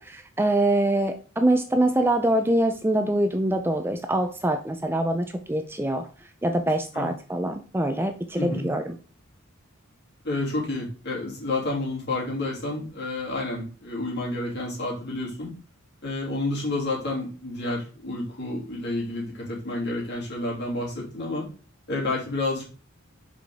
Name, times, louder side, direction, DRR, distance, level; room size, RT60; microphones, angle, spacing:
voice 1, 0.0-6.1 6.4-9.0, right 1 dB, 10° right, 6 dB, 0.4 m, -24 dB
voice 2, 8.4-8.7 10.2-15.5 16.0-21.5 21.9-22.6, left 2 dB, 55° left, -3 dB, 2.8 m, -30 dB
5.9 x 5.0 x 3.6 m, 0.37 s
head